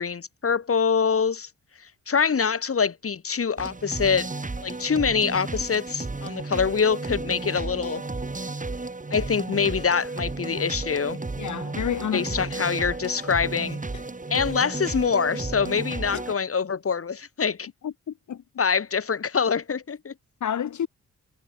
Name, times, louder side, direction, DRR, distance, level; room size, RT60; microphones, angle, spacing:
voice 1, 0.0-1.5 1.8-4.3 4.6-8.0 9.1-11.2 12.1-13.8 14.3-17.7 18.6-20.1, left 6 dB, 50° left, 2.6 m, -25 dB
sound 1, 3.6-16.3, right 3 dB, 25° right, 4.6 m, -33 dB
voice 2, 11.4-12.4 13.9-14.0 16.1-16.2 17.8-18.4 20.4-20.9, left 9 dB, 70° left, 2.6 m, -30 dB
cardioid pair, 70°, 30 cm